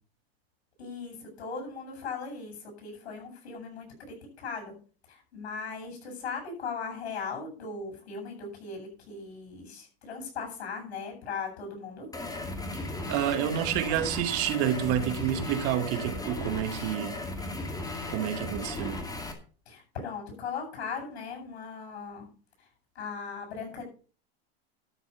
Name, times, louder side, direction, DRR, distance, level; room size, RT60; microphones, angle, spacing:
voice 1, 0.8-4.7 5.1-12.1 19.7-22.3 22.6-22.7 22.9-23.8, left 5 dB, 90° left, 7.8 m, -38 dB
sound 1, 12.1-19.3, left 2 dB, 10° left, 2.3 m, -36 dB
voice 2, 12.7-17.5 18.1-19.0, right 11 dB, 50° right, 1.8 m, -29 dB
12.5 x 6.3 x 6.9 m
supercardioid pair, 135°, 31 cm